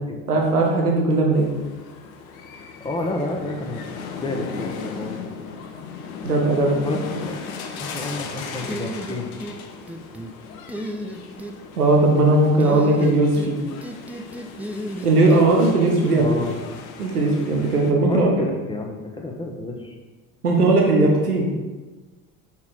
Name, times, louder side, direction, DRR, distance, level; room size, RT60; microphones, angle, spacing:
voice 1, 0.3-1.5 6.2-6.8 11.8-13.6 15.0-16.3 17.0-18.3 20.4-21.5, right 2 dB, 85° right, 0 dB, 1.1 m, -18 dB
sound 1, 1.3-17.9, left 5 dB, 70° left, 0.9 m, -37 dB
voice 2, 2.5-5.3 6.8-7.4 7.8-9.3 16.2-16.6 18.1-20.0, left 2 dB, 10° left, 1 dB, 1.1 m, -30 dB
sound 2, 8.7-9.6 9.9-10.3 10.7-11.5 12.6-13.5 13.8-15.5, right 1 dB, 5° right, 0.4 m, -33 dB
5.6 x 4.5 x 4.7 m, 1.2 s
figure-of-eight pair, 60°, 44 cm